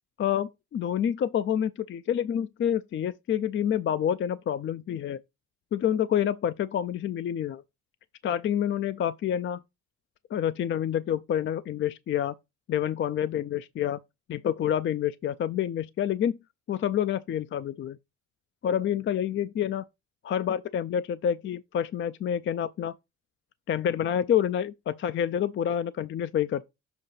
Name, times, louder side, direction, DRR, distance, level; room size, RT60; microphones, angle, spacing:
voice 1, 0.2-5.2 5.7-7.6 8.2-9.6 10.3-12.3 12.7-14.0 14.3-16.4 16.7-18.0 18.6-19.8 20.2-23.0 23.7-26.7, left 9 dB, 40° left, 0.4 m, -28 dB
7.1 x 2.7 x 5.7 m
cardioid pair, 90°, 30 cm